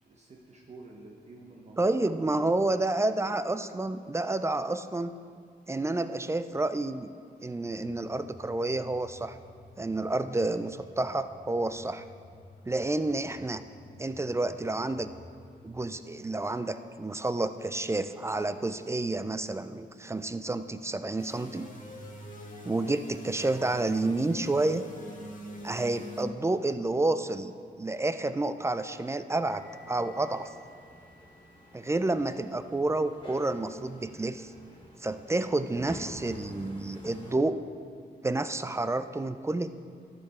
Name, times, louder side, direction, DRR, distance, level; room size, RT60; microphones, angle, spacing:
voice 1, 0.0-2.5, right 2 dB, 40° right, -1 dB, 0.9 m, -50 dB
voice 2, 1.8-5.1 5.7-7.1 7.4-9.4 9.8-12.0 12.7-13.6 14.0-15.1 15.6-21.7 22.6-24.8 25.6-30.5 31.7-34.5 35.0-37.6 38.2-39.8, right 2 dB, 15° right, 11 dB, 0.3 m, -30 dB
sound 1, 7.7-15.7, left 1 dB, 90° left, 1.1 m, -54 dB
sound 2, 21.2-26.2, equal, 45° left, 1.8 m, -44 dB
sound 3, 29.4-37.3, left 1 dB, 30° left, 1.9 m, -49 dB
13.5 x 6.8 x 4.2 m, 2.1 s
wide cardioid pair, 120°, 18 cm